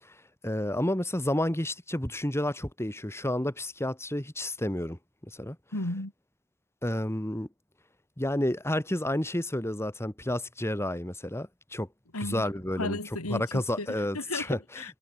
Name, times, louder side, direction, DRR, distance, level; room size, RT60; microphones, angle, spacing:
voice 1, 0.4-5.6 6.8-7.5 8.2-11.9 12.3-13.0 13.3-14.6, left 1 dB, 10° left, 2.5 m, -30 dB
voice 2, 5.7-6.1 12.1-14.9, left 2 dB, 80° left, 3.8 m, -35 dB
head